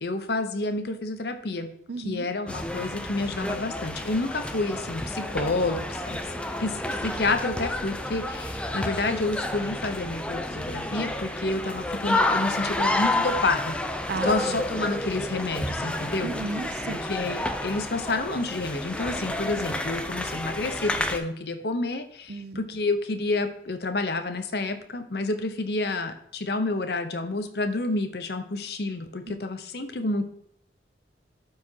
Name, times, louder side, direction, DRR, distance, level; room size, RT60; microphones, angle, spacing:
voice 1, 0.0-1.7 2.0-6.2 6.6-13.8 14.2-16.3 17.1-30.3, left 2 dB, 60° left, 8 dB, 0.8 m, -29 dB
voice 2, 1.9-2.3 14.1-14.6 16.2-17.1 22.3-22.6 29.3-29.4, right 3 dB, 60° right, 13 dB, 0.5 m, -34 dB
sound 1, 2.5-21.2, left 1 dB, 5° left, 0.4 m, -30 dB
12.5 x 4.8 x 2.8 m, 0.72 s
head